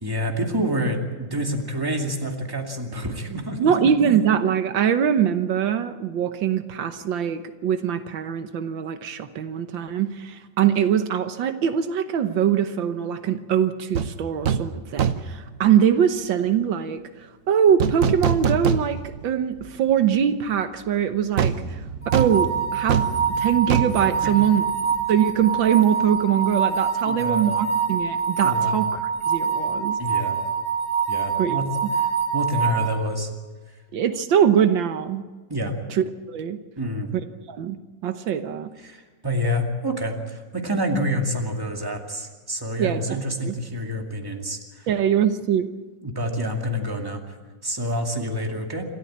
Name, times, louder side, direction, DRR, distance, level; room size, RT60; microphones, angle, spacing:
voice 1, 0.0-3.7 24.2-24.3 27.0-27.5 28.4-28.8 30.0-30.4 31.1-31.7 32.0-32.1 32.3-33.3 35.5-35.7 36.8-37.1 38.8-44.9 46.0-47.2 47.6-48.8, equal, 10° right, 2 dB, 2.3 m, -27 dB
voice 2, 3.6-17.0 17.5-21.5 22.1-23.1 23.4-24.6 25.1-30.0 31.4-31.6 31.8-31.9 33.9-35.2 35.9-36.6 37.5-38.7 42.8-43.2 43.4-43.6 44.9-45.7, right 8 dB, 85° right, 9 dB, 1.8 m, -22 dB
sound 1, 13.9-14.1 14.4-14.7 15.0-15.4 17.8-19.2 19.6-19.7 21.4-25.0 25.3-25.4, right 7 dB, 55° right, 1.1 m, -24 dB
sound 2, 22.0-32.9, right 6 dB, 5° left, 5.2 m, -25 dB
27.0 x 13.5 x 8.7 m, 1.3 s
omnidirectional pair, 2.0 m